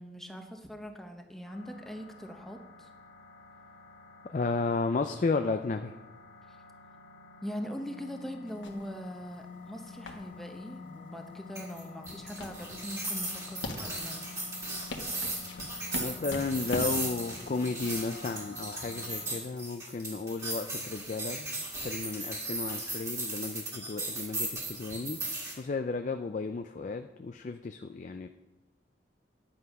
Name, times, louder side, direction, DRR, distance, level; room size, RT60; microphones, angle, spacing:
voice 1, 0.0-2.9 7.4-14.2, equal, ahead, 4 dB, 0.9 m, -42 dB
sound 1, 1.4-19.4, left 5 dB, 65° left, 1.8 m, -49 dB
voice 2, 4.3-5.9 15.9-25.2 25.6-28.3, left 3 dB, 40° left, 7 dB, 0.4 m, -33 dB
sound 2, 8.5-21.1, left 2 dB, 90° left, 1.4 m, -43 dB
sound 3, 11.5-25.6, right 2 dB, 15° right, 1.9 m, -37 dB
10.5 x 7.7 x 5.4 m, 1.1 s
head